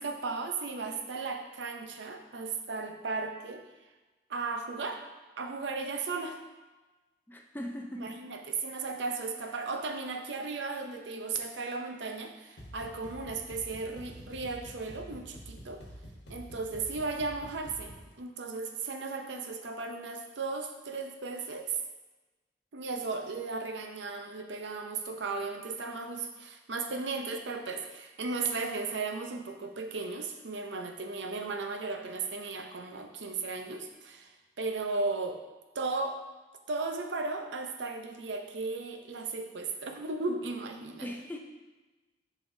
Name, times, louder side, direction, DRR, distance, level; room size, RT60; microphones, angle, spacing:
voice 1, 0.0-3.6 4.3-5.0 5.4-6.4 7.9-15.8 16.3-21.8 22.7-35.4 35.7-36.2 36.7-41.1, right 3 dB, 80° right, 5 dB, 0.6 m, -36 dB
voice 2, 7.3-8.2 41.0-41.4, equal, 10° left, 2 dB, 0.4 m, -39 dB
sound 1, 12.6-18.1, equal, 75° left, 1.2 m, -48 dB
7.0 x 5.1 x 2.7 m, 1.2 s
head